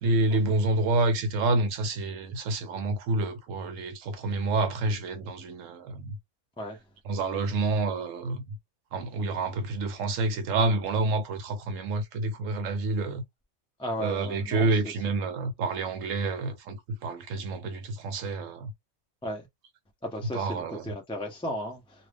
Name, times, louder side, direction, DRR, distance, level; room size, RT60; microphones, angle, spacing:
voice 1, 0.0-6.2 7.0-8.6 8.9-13.2 14.0-18.7 20.3-20.9, right 2 dB, 70° right, 1.0 m, -28 dB
voice 2, 13.8-14.7 15.2-15.3 19.2-19.5 20.0-22.1, equal, 5° left, 0.5 m, -35 dB
2.5 x 2.4 x 3.4 m
omnidirectional pair, 1.4 m